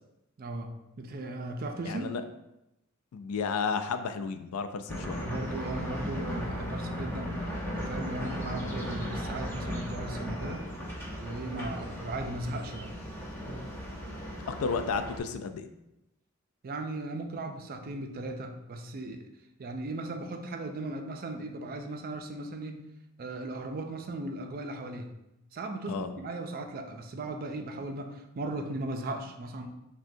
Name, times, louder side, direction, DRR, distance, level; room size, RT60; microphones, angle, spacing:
voice 1, 0.4-2.1 5.1-10.7 11.2-12.9 16.6-19.3 19.6-22.8 23.2-25.1 25.5-29.7, right 2 dB, 45° right, 5 dB, 0.4 m, -37 dB
voice 2, 1.9-2.2 3.1-5.3 14.5-15.7 25.9-26.1, left 5 dB, 90° left, 9 dB, 0.4 m, -32 dB
sound 1, 4.9-15.2, equal, 10° left, 0.8 m, -36 dB
6.1 x 2.2 x 2.7 m, 0.89 s
head